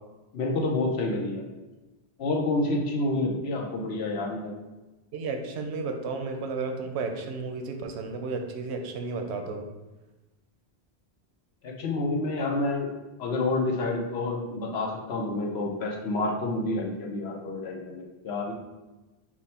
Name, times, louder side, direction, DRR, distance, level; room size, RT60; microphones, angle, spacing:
voice 1, 0.3-1.5 2.2-4.5 11.6-12.9 13.2-18.5, left 2 dB, 75° left, -1 dB, 1.0 m, -28 dB
voice 2, 5.1-9.6, right 4 dB, 85° right, 4 dB, 0.9 m, -33 dB
6.0 x 2.1 x 4.2 m, 1.1 s
omnidirectional pair, 1.1 m